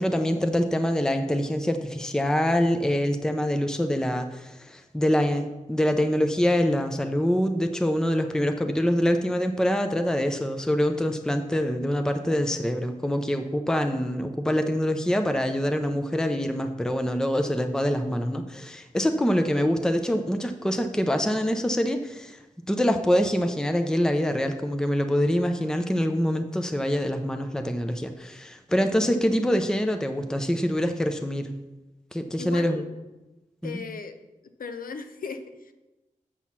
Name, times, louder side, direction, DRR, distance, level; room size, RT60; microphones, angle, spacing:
voice 1, 0.0-22.4 22.7-31.5 32.1-32.8 33.6-33.8, equal, 5° left, 7 dB, 0.6 m, -25 dB
voice 2, 32.4-32.9 33.6-34.1 34.4-35.7, left 5 dB, 85° left, 8 dB, 0.7 m, -37 dB
7.3 x 6.4 x 5.7 m, 1.1 s
wide cardioid pair, 85°, 14 cm